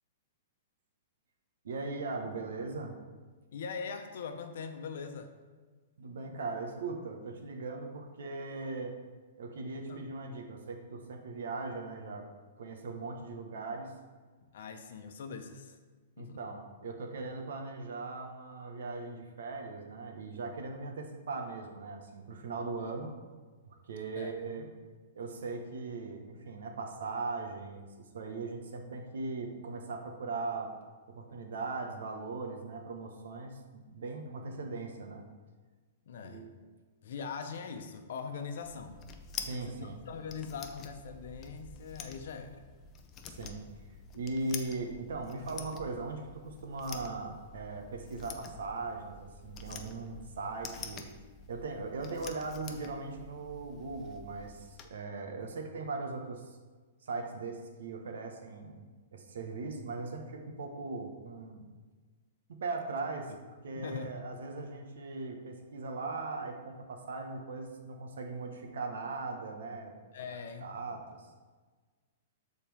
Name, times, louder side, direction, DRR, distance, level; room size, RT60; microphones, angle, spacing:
voice 1, 1.6-2.9 6.0-8.9 9.4-12.3 12.6-13.9 16.2-23.1 23.8-24.7 25.1-30.7 31.1-35.2 36.2-36.6 39.4-40.0 43.3-43.8 44.1-51.1 51.5-56.6 57.0-61.7 62.5-63.3 63.6-69.9 70.3-71.3, right 3 dB, 80° right, 3 dB, 1.3 m, -39 dB
voice 2, 3.5-5.3 9.9-10.1 14.5-15.8 16.2-16.4 24.2-24.7 36.1-36.5 37.0-39.0 39.7-42.6 63.7-64.2 70.1-71.0, left 5 dB, 65° left, 7 dB, 0.9 m, -42 dB
sound 1, 38.6-54.8, left 5 dB, 20° left, 0.6 m, -48 dB
12.0 x 4.3 x 3.5 m, 1.4 s
hypercardioid pair, 155°, 0 cm